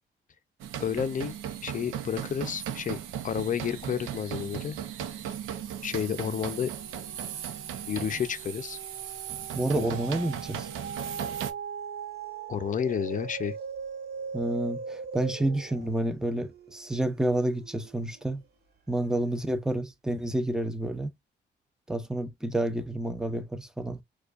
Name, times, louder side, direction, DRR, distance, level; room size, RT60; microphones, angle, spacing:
sound 1, 0.6-11.5, right 9 dB, 90° right, 0.7 m, -37 dB
voice 1, 0.8-1.4 1.6-3.0 3.2-4.8 5.8-6.7 7.9-8.8 9.7-9.9 12.5-13.6, left 8 dB, 40° left, 0.5 m, -30 dB
sound 2, 6.2-18.5 19.0-19.1, right 6 dB, 55° right, 1.0 m, -41 dB
voice 2, 9.5-10.7 14.3-18.4 18.9-21.1 21.9-24.0, right 1 dB, 5° right, 0.6 m, -29 dB
4.4 x 2.3 x 2.4 m
cardioid pair, 90°, 20 cm